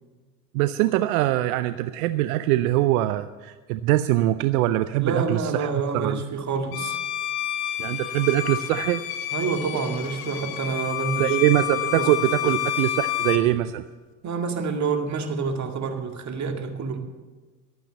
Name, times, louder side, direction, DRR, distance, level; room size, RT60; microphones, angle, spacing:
voice 1, 0.5-6.2 7.8-9.0 11.2-13.8, right 15 dB, 75° right, 12 dB, 0.6 m, -23 dB
voice 2, 5.0-7.0 9.3-11.4 12.0-12.1 12.4-12.6 14.2-17.0, right 5 dB, 40° right, 4 dB, 2.1 m, -28 dB
Bowed string instrument, 6.7-13.5, left 12 dB, 75° left, 1.3 m, -29 dB
12.5 x 8.9 x 7.5 m, 1.3 s
hypercardioid pair, 75°, 44 cm